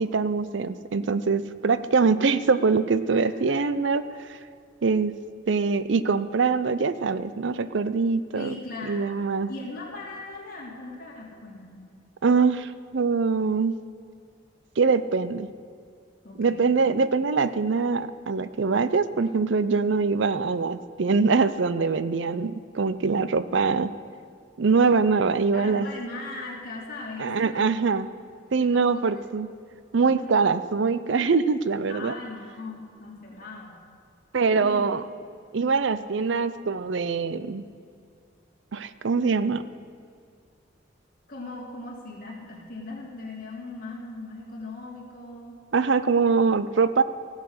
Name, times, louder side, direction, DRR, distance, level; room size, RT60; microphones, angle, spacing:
voice 1, 0.0-4.0 4.8-5.1 5.5-8.5 8.8-9.5 12.2-13.7 14.8-15.5 16.4-23.9 24.6-25.9 27.2-28.1 28.5-29.5 29.9-32.2 34.3-35.0 35.5-37.6 38.7-39.6 45.7-47.0, right 4 dB, 65° right, 14 dB, 0.5 m, -23 dB
voice 2, 3.1-3.6 8.3-11.9 16.2-16.6 25.5-28.1 28.6-29.2 30.1-30.5 31.9-33.8 34.6-34.8 41.3-45.6, left 2 dB, 45° left, -3 dB, 3.1 m, -39 dB
16.0 x 8.2 x 6.6 m, 2.3 s
head